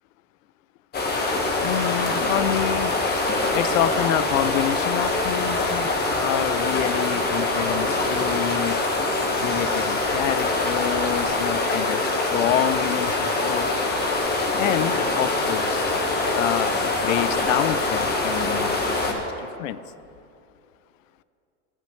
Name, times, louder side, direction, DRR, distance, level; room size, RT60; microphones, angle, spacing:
sound 1, 0.9-19.1, left 2 dB, 25° left, 1.4 m, -24 dB
voice 1, 1.6-2.9 3.5-5.9 6.2-8.8 9.4-13.7 14.6-15.9 16.4-16.7 17.0-19.8, left 12 dB, 80° left, 16 dB, 0.5 m, -27 dB
14.5 x 10.0 x 3.2 m, 2.5 s
supercardioid pair, 115°, 39 cm